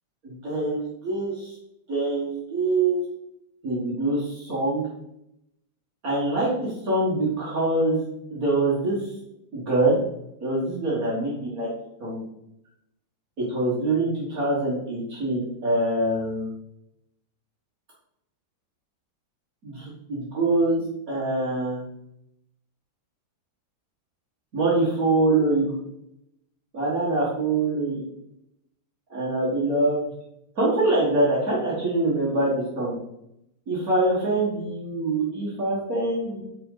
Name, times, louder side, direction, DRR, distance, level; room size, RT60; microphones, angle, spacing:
voice 1, 0.2-1.5 1.9-3.0 3.6-4.8 6.0-9.0 9.5-10.0 10.4-11.7 12.0-12.2 13.4-16.5 19.6-21.8 24.5-25.7 26.7-28.0 29.1-30.0 30.6-32.9 33.7-36.4, right 2 dB, 50° right, -6 dB, 2.0 m, -24 dB
5.6 x 5.1 x 3.9 m, 0.80 s
omnidirectional pair, 2.0 m